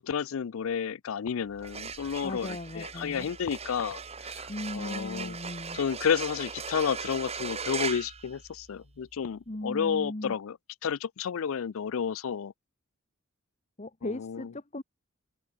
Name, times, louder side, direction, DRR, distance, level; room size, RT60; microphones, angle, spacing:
voice 1, 0.0-4.0 4.3-5.4 5.7-10.6 10.8-12.5 14.0-14.5, left 7 dB, 75° left, 0.4 m, -31 dB
sound 1, 1.5-9.0, right 5 dB, 30° right, 2.3 m, -39 dB
voice 2, 2.2-3.3 4.5-5.8 9.5-10.3 13.8-14.8, left 1 dB, 30° left, 1.2 m, -37 dB
open air
head